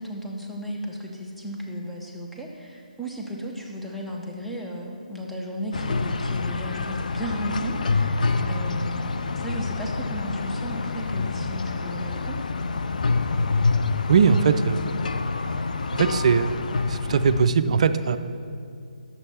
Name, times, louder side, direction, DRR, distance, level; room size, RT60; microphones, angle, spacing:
voice 1, 0.0-12.4, equal, ahead, -2 dB, 0.8 m, -34 dB
sound 1, 5.7-17.5, left 4 dB, 65° left, 0.4 m, -27 dB
voice 2, 14.1-14.9 15.9-16.5 16.9-18.2, right 6 dB, 50° right, 11 dB, 0.4 m, -20 dB
9.5 x 7.1 x 4.3 m, 2.3 s
figure-of-eight pair, 145°, 5 cm